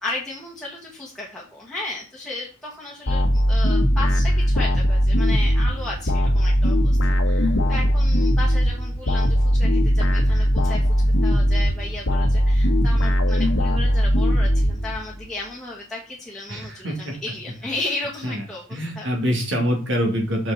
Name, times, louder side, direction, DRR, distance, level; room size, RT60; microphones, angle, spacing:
voice 1, 0.0-10.8 11.2-19.1, left 2 dB, ahead, -5 dB, 1.8 m, -34 dB
sound 1, 3.1-15.3, equal, 60° left, 1.3 m, -19 dB
voice 2, 16.5-17.1 18.2-18.4 18.7-20.5, equal, 60° right, 0 dB, 2.8 m, -25 dB
6.7 x 6.3 x 4.2 m, 0.36 s
head